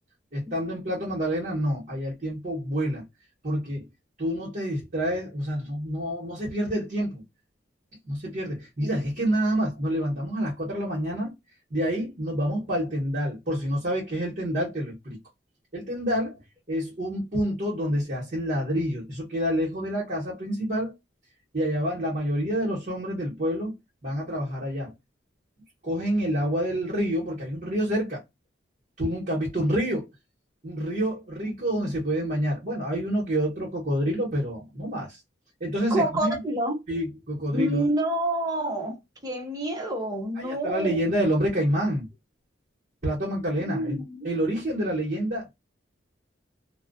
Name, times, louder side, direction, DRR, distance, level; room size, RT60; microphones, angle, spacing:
voice 1, 0.3-3.0 3.4-3.9 4.2-7.2 8.0-11.3 11.7-15.2 15.7-16.4 16.7-20.9 21.5-23.7 24.0-24.9 25.8-28.2 29.0-30.1 30.6-35.2 35.6-36.4 36.9-37.9 40.4-42.1 43.0-45.5, equal, 45° right, 1.0 m, -28 dB
voice 2, 35.9-36.8 37.5-39.0 39.2-41.0 43.7-44.3, right 1 dB, 20° right, 0.8 m, -28 dB
2.3 x 2.2 x 2.4 m
head